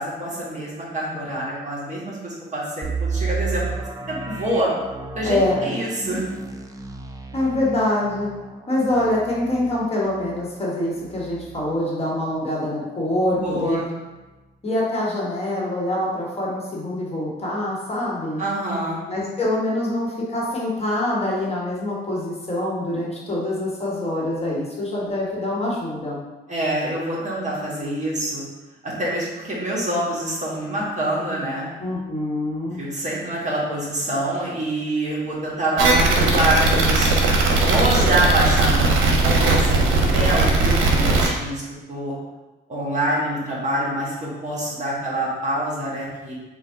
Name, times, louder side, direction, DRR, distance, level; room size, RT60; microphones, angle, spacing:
voice 1, 0.0-4.7 5.1-6.2 13.3-13.9 18.4-19.0 26.5-28.4 28.8-31.7 32.7-37.2 37.6-41.6 41.9-42.1 42.7-46.3, right 1 dB, 35° right, -5 dB, 1.4 m, -26 dB
sound 1, 2.8-12.5 12.9-13.0 13.5-13.7, right 4 dB, 15° right, 0.4 m, -33 dB
voice 2, 5.2-5.7 7.3-8.3 8.7-13.8 14.6-18.4 19.1-26.2 31.8-32.8, left 1 dB, 30° left, -5 dB, 1.3 m, -25 dB
sound 2, 35.8-41.3, right 3 dB, 85° right, 0.8 m, -18 dB
3.5 x 2.5 x 4.5 m, 1.1 s
cardioid pair, 90°, 20 cm